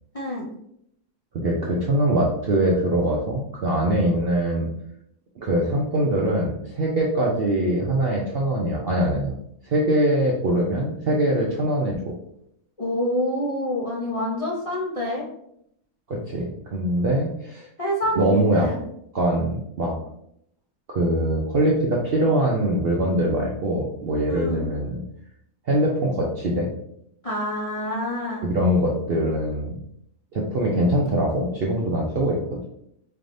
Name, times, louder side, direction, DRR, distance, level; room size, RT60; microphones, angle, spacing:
voice 1, 0.1-0.4 12.8-15.2 17.8-18.8 24.3-24.6 27.2-28.5, equal, 40° left, -4 dB, 0.5 m, -27 dB
voice 2, 1.3-4.7 5.4-9.3 9.6-12.1 16.1-17.7 18.2-18.7 19.1-19.9 20.9-25.0 25.7-26.7 28.4-29.8 30.3-32.7, right 1 dB, 60° right, -2 dB, 0.6 m, -23 dB
4.6 x 3.3 x 2.5 m, 0.73 s
omnidirectional pair, 1.6 m